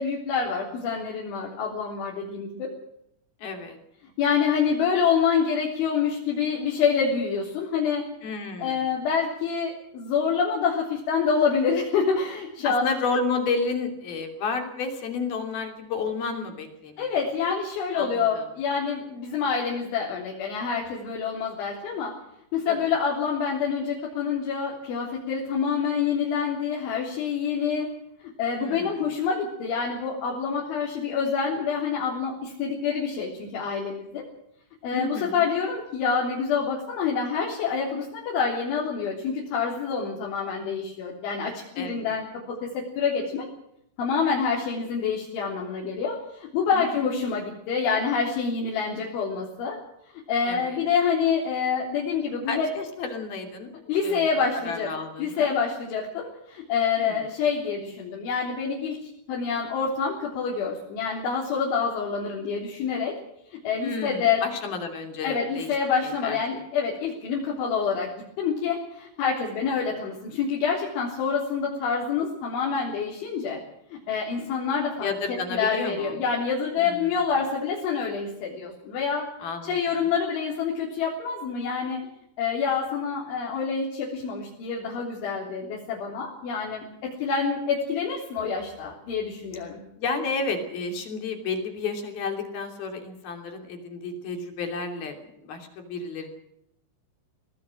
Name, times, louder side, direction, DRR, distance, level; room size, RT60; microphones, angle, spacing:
voice 1, 0.0-2.7 4.2-8.0 8.6-12.9 17.0-22.1 22.5-27.9 28.4-34.2 34.8-42.7 43.0-43.5 44.0-49.8 50.3-52.7 53.9-54.9 55.2-59.0 59.3-63.2 63.6-64.4 65.2-68.1 68.4-73.6 73.9-75.1 75.5-79.3 79.6-82.0 82.4-86.8 87.2-89.8, left 6 dB, 70° left, -3 dB, 5.9 m, -27 dB
voice 2, 3.4-3.8 8.2-8.9 12.6-17.0 17.9-18.5 22.7-22.9 28.5-29.1 34.9-35.5 41.8-42.2 46.7-46.8 50.5-50.8 52.5-54.3 54.7-55.5 57.0-57.2 63.8-65.7 66.0-66.4 75.0-76.2 76.8-77.1 79.4-80.1 90.0-96.3, left 4 dB, 55° left, 5 dB, 4.6 m, -31 dB
24.5 x 18.0 x 6.4 m, 0.78 s
omnidirectional pair, 5.7 m